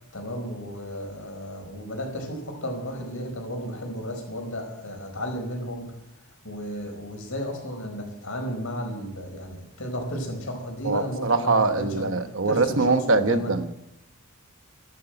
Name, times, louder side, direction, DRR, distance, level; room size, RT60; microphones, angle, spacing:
voice 1, 0.1-5.9 6.4-12.1 12.4-13.5, equal, 65° left, 3 dB, 4.8 m, -33 dB
voice 2, 10.8-13.8, right 3 dB, 60° right, 8 dB, 1.1 m, -23 dB
13.5 x 12.0 x 7.9 m, 0.81 s
head